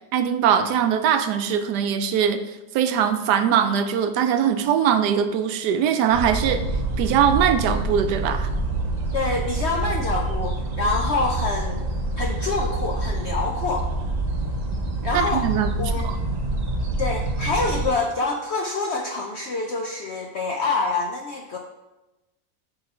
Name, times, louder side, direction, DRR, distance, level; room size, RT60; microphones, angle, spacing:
voice 1, 0.1-2.4 2.7-6.6 7.0-8.5 15.1-16.2, right 8 dB, 80° right, 9 dB, 1.1 m, -21 dB
sound 1, 6.1-17.9, right 2 dB, 45° right, 0.5 m, -26 dB
voice 2, 9.1-11.8 12.2-13.9 15.0-15.5 15.8-16.1 17.0-21.6, left 3 dB, 65° left, 2 dB, 0.6 m, -26 dB
6.8 x 3.9 x 5.5 m, 1.0 s
omnidirectional pair, 1.8 m